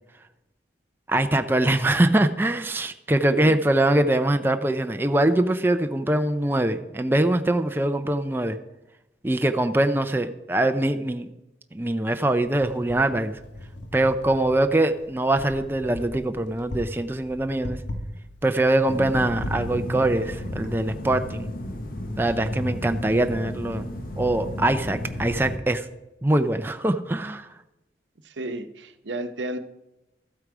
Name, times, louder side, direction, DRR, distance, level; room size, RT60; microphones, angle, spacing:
voice 1, 1.1-8.6 9.2-11.3 11.7-13.3 13.9-17.8 18.4-21.5 22.2-23.9 24.2-25.8 26.2-27.5, right 1 dB, 10° right, 7 dB, 0.5 m, -23 dB
voice 2, 3.3-3.6 28.2-29.6, right 1 dB, 90° right, 9 dB, 0.9 m, -32 dB
Wind, 12.4-21.3, left 1 dB, 85° left, 1.4 m, -39 dB
sound 1, 18.8-25.6, left 1 dB, 50° left, 1.1 m, -33 dB
14.0 x 8.1 x 4.9 m, 0.96 s
head